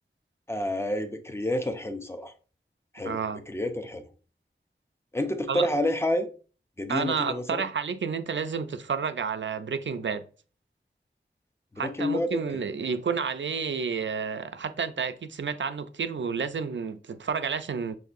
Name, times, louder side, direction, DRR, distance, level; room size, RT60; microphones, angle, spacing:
voice 1, 0.5-2.3 2.9-3.2 3.5-4.0 5.1-6.3 6.8-7.6 11.8-12.6, left 1 dB, 15° left, 0.6 m, -29 dB
voice 2, 3.0-3.4 5.5-5.7 6.9-10.2 11.8-18.0, right 6 dB, 70° right, 0.4 m, -30 dB
5.8 x 2.6 x 2.4 m
wide cardioid pair, 50°, 20 cm